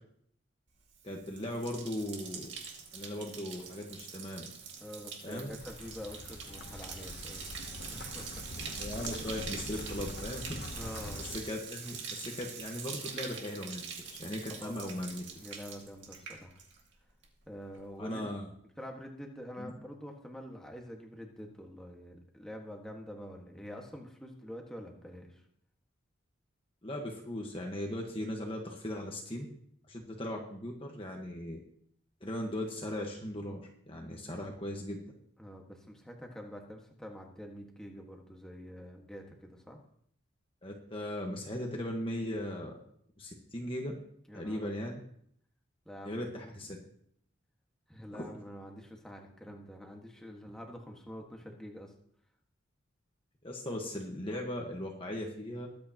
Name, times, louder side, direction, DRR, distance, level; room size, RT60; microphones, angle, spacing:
Bathtub (filling or washing), 0.9-17.0 17.2-17.8, right 6 dB, 65° right, 2.2 m, -44 dB
voice 1, 1.0-2.5 2.9-4.5 5.2-5.5 8.8-10.6 11.2-15.2 18.0-18.5 19.6-19.7 26.8-29.5 29.9-31.6 32.2-33.6 33.9-35.0 40.6-42.7 43.2-43.9 44.3-45.0 46.0-46.8 48.1-48.3 53.4-55.7, left 1 dB, 25° left, 0 dB, 1.3 m, -38 dB
voice 2, 4.8-7.5 7.9-8.8 10.7-11.3 14.6-15.0 15.4-16.5 17.5-18.3 18.8-25.4 35.4-39.8 44.3-44.7 45.8-46.7 47.9-51.9, equal, 5° left, 0 dB, 1.6 m, -46 dB
sound 1, 5.3-11.4, left 2 dB, 50° left, 0.9 m, -44 dB
21.5 x 8.6 x 3.0 m, 0.67 s
head